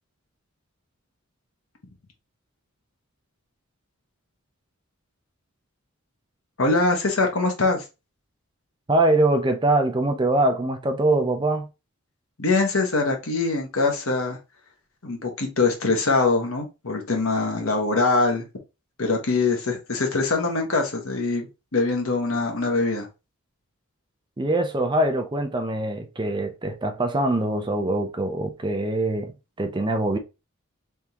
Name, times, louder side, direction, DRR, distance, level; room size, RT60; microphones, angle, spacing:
voice 1, 6.6-7.8 12.4-14.4 15.0-18.4 19.0-21.5 21.7-23.1, left 3 dB, 70° left, 1.2 m, -23 dB
voice 2, 8.9-11.7 24.4-29.3 29.6-30.2, right 2 dB, 20° right, 0.5 m, -23 dB
3.6 x 3.5 x 2.9 m
head